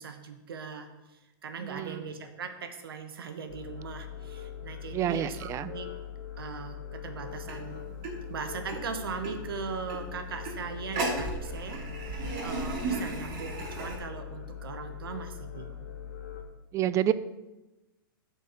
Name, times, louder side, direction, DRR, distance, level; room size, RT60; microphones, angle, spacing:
voice 1, 0.0-5.9 6.4-7.8 8.3-11.8 12.1-15.9, right 5 dB, 85° right, 7 dB, 1.0 m, -39 dB
voice 2, 1.6-2.0 4.9-5.7 16.7-17.1, right 11 dB, 25° right, 15 dB, 0.4 m, -28 dB
sound 1, 3.5-16.4, left 9 dB, 65° left, 2.0 m, -41 dB
sound 2, 7.2-14.0, right 2 dB, 45° right, 2.7 m, -36 dB
8.7 x 4.3 x 6.8 m, 1.0 s
hypercardioid pair, 125°, 12 cm